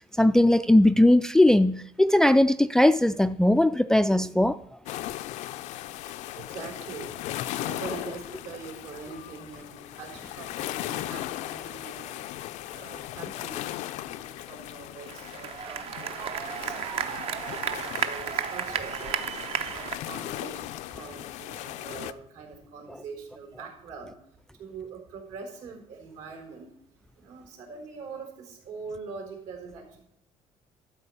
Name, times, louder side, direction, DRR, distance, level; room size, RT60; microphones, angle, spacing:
voice 1, 0.2-4.6, left 1 dB, 5° left, 0.3 m, -19 dB
sound 1, 4.8-22.1, left 14 dB, 85° left, 0.6 m, -37 dB
voice 2, 6.3-12.3 12.7-13.7 14.0-26.8 27.1-30.0, right 5 dB, 75° right, 4.1 m, -43 dB
sound 2, 15.0-20.0, right 8 dB, 55° right, 0.9 m, -32 dB
12.5 x 4.8 x 8.5 m
cardioid pair, 145°, 12 cm